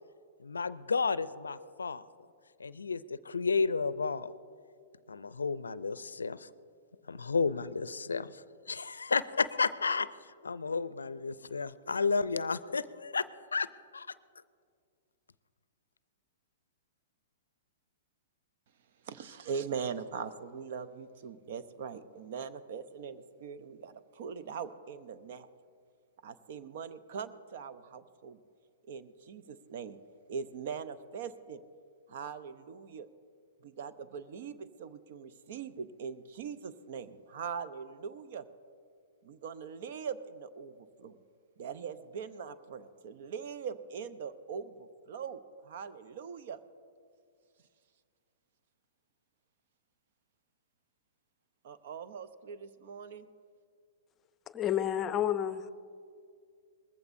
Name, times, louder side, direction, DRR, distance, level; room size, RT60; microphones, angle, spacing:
voice 1, 0.4-2.0 2.6-4.3 5.1-6.5 7.1-10.1 10.4-13.7 13.9-14.1, left 4 dB, 85° left, 16 dB, 0.4 m, -32 dB
voice 2, 19.0-25.5 26.2-28.4 28.9-30.0 30.3-31.6 32.1-33.1 33.6-38.5 39.2-41.2 41.6-46.6 51.6-53.3, right 6 dB, 55° right, 11 dB, 0.7 m, -41 dB
voice 3, 54.5-55.7, left 10 dB, 25° left, 13 dB, 0.6 m, -30 dB
20.5 x 15.0 x 2.6 m, 2.2 s
hypercardioid pair, 115°, 0 cm